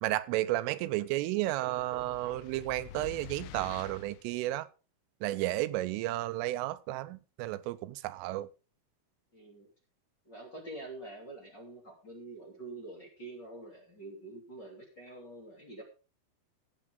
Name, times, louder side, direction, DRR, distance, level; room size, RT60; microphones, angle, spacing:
voice 1, 0.0-4.7 5.2-8.5, right 16 dB, 85° right, 3.3 m, -32 dB
sound 1, 1.6-4.3, left 11 dB, 80° left, 3.1 m, -47 dB
voice 2, 9.3-9.7 10.2-15.8, right 2 dB, 25° left, 2.7 m, -46 dB
15.0 x 8.7 x 3.7 m
omnidirectional pair, 5.7 m